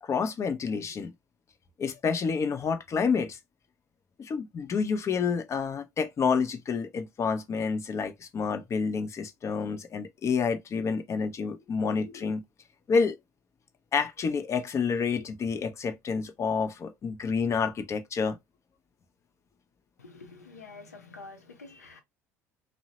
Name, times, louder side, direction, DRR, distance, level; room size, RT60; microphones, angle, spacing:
voice 1, 0.0-1.1 1.8-3.4 4.2-12.4 12.9-13.1 13.9-18.4, left 5 dB, 35° left, 0.6 m, -29 dB
voice 2, 20.0-22.0, left 3 dB, 90° left, 0.6 m, -47 dB
2.8 x 2.0 x 2.7 m
hypercardioid pair, 65°, 8 cm